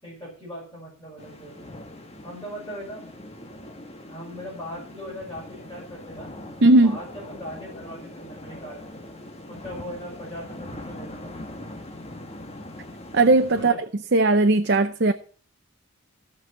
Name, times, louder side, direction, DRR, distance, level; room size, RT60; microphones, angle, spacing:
voice 1, 0.0-1.8 2.2-3.1 4.1-6.3 6.8-9.0 9.5-11.3 13.5-13.8, equal, 15° left, 6.3 m, -39 dB
sound 1, 1.2-13.7, left 1 dB, 30° left, 1.7 m, -41 dB
voice 2, 6.6-7.0 13.1-13.7 14.1-15.1, right 2 dB, 55° right, 0.7 m, -17 dB
16.5 x 6.2 x 7.7 m
head